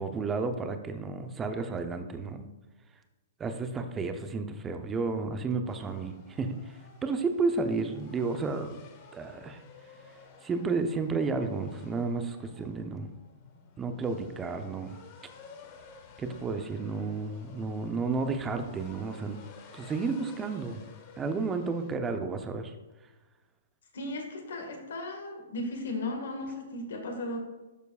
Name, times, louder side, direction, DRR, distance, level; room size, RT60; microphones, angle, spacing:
voice 1, 0.0-2.5 3.4-6.7 7.0-8.8 9.1-9.6 10.4-13.1 13.8-15.0 16.2-19.4 19.7-20.8 21.2-22.7, right 4 dB, 15° right, 7 dB, 0.7 m, -32 dB
sound 1, 5.6-21.9, left 5 dB, 35° left, 1.1 m, -53 dB
voice 2, 23.9-27.4, left 2 dB, 70° left, 3 dB, 1.8 m, -36 dB
12.0 x 4.5 x 2.4 m, 1.2 s
hypercardioid pair, 130°, 0 cm